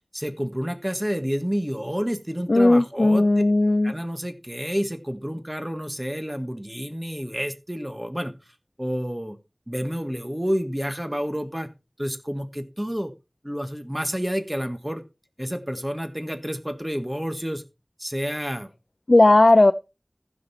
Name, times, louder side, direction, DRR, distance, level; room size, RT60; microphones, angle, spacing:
voice 1, 0.1-3.2 3.8-8.3 8.8-9.4 9.7-11.7 12.0-13.1 13.4-15.0 15.4-17.6 18.0-18.7, equal, 15° right, 1.6 m, -29 dB
voice 2, 2.5-3.9 19.1-19.7, left 2 dB, 80° left, 0.4 m, -16 dB
15.0 x 5.4 x 4.3 m
wide cardioid pair, 40°, 0 cm